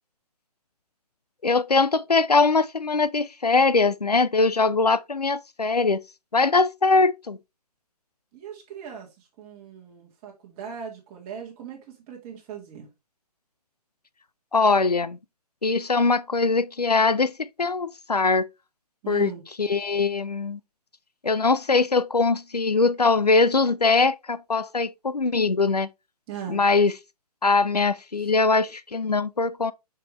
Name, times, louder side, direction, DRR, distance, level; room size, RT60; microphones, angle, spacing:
voice 1, 1.4-6.0 6.3-7.4 14.5-15.2 15.6-18.5 19.1-19.3 19.6-20.6 21.2-25.9 26.5-26.9 27.4-29.7, left 4 dB, 80° left, 0.6 m, -22 dB
voice 2, 8.3-12.9 19.0-19.4 26.3-26.6, right 8 dB, 20° right, 2.1 m, -39 dB
6.6 x 5.1 x 3.1 m
figure-of-eight pair, 130°, 20 cm